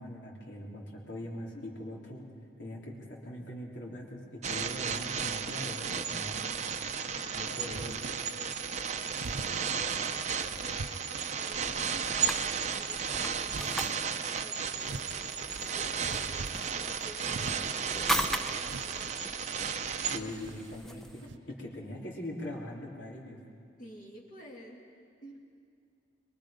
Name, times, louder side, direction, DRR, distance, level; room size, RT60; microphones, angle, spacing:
voice 1, 0.0-2.2 2.6-6.4 7.3-8.0 20.1-21.2 21.6-23.4, left 1 dB, 75° left, -2 dB, 3.6 m, -41 dB
sound 1, 4.4-20.2, right 6 dB, 35° right, 0.7 m, -34 dB
voice 2, 7.0-12.0 12.7-19.4 20.2-20.4 21.0-21.1 21.3-21.4 23.8-24.8 25.2-25.4, equal, 45° left, -2 dB, 2.3 m, -51 dB
sound 2, 7.7-8.2 9.2-9.7 10.4-11.6 12.1-12.6 13.4-14.0 14.8-16.8 17.3-17.8 18.5-19.3 19.8-20.8 21.2-21.4, right 2 dB, 80° right, 0.7 m, -43 dB
sound 3, 11.5-21.3, equal, ahead, 0.6 m, -39 dB
23.5 x 22.5 x 5.2 m, 2.3 s
head